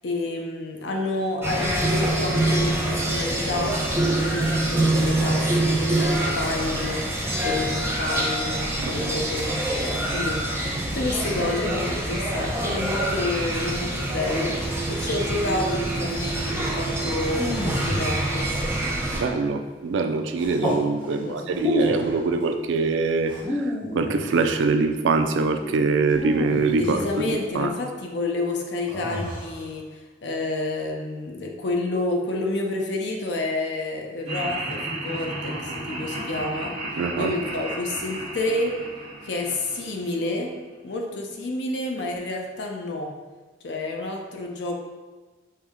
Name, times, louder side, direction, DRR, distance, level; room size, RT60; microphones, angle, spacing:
voice 1, 0.0-7.1 7.4-14.6 14.9-18.5 21.2-21.7 26.8-36.7 37.2-38.8 39.2-40.5 40.8-43.1 43.6-44.8, left 2 dB, 65° left, 1 dB, 0.5 m, -29 dB
sound 1, 1.4-19.2, right 1 dB, 15° right, 0.6 m, -25 dB
voice 2, 8.8-9.1 19.1-27.8 37.0-37.4, right 4 dB, 85° right, 7 dB, 0.3 m, -24 dB
sound 2, 17.1-19.1 20.4-20.9 21.5-22.2 23.2-24.6 26.1-27.3 28.9-29.6, left 1 dB, 25° left, 0.9 m, -30 dB
Laughter, 34.3-40.4, right 1 dB, 30° right, 1.3 m, -34 dB
4.5 x 2.1 x 3.5 m, 1.3 s
head